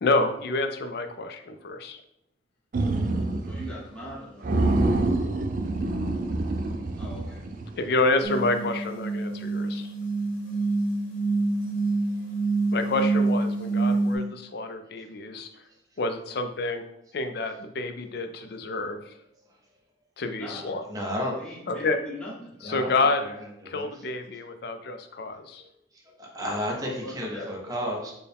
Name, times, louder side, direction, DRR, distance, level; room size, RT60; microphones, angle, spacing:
voice 1, 0.0-2.0 7.8-9.9 12.7-15.5 16.0-16.8 17.1-19.1 20.2-20.8 21.7-22.0 22.6-23.3 23.6-25.6, left 3 dB, 55° left, 7 dB, 0.4 m, -28 dB
sound 1, 2.7-3.7 4.0-4.1 4.4-7.8, right 2 dB, 45° right, 0.4 m, -26 dB
voice 2, 3.5-4.5 7.0-7.4 20.4-20.7 21.4-22.5 26.8-27.9, left 1 dB, 5° left, -7 dB, 1.0 m, -40 dB
sound 2, 8.2-14.2, right 3 dB, 80° left, 0.9 m, -26 dB
voice 3, 20.9-21.3 22.6-23.0 23.2-23.3 23.6-23.9 25.9-28.1, equal, 20° right, -1 dB, 0.7 m, -32 dB
4.4 x 2.2 x 3.4 m, 0.79 s
head